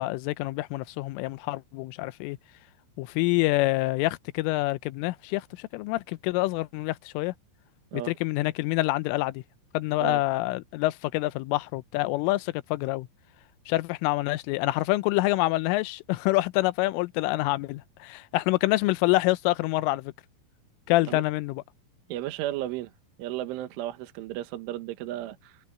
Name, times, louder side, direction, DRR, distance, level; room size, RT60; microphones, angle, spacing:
voice 1, 0.0-2.4 3.0-7.3 7.9-9.4 9.7-13.1 13.7-20.1 20.9-21.6, left 19 dB, 85° left, 3.3 m, -26 dB
voice 2, 22.1-22.9 23.2-25.6, right 14 dB, 75° right, 3.7 m, -34 dB
omnidirectional pair, 5.8 m